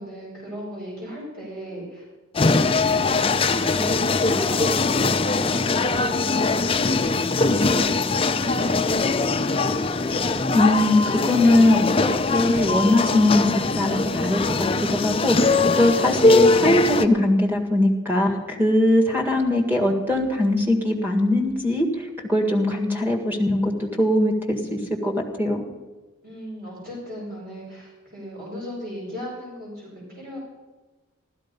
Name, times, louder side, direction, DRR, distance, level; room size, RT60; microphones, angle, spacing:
voice 1, 0.0-2.0 2.9-7.0 7.4-9.8 26.2-30.4, equal, 45° right, -5 dB, 5.9 m, -37 dB
sound 1, 2.3-17.0, left 3 dB, 25° left, 0.5 m, -21 dB
voice 2, 10.5-25.6, left 1 dB, 10° right, 2 dB, 1.8 m, -21 dB
15.0 x 13.0 x 5.3 m, 1.2 s
head